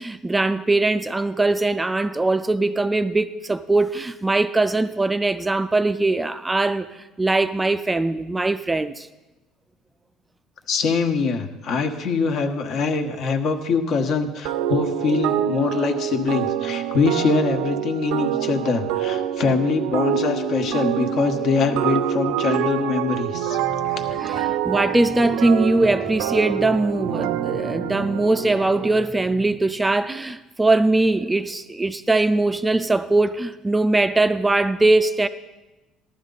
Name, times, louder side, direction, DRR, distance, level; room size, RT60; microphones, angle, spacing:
voice 1, 0.0-9.1 23.6-23.8 24.2-35.3, right 2 dB, 10° right, 0.4 m, -21 dB
voice 2, 10.7-24.5, left 4 dB, 55° left, 1.3 m, -23 dB
sound 1, 14.5-29.1, right 10 dB, 85° right, 0.5 m, -26 dB
14.5 x 11.5 x 4.0 m
cardioid pair, 120°, 0 cm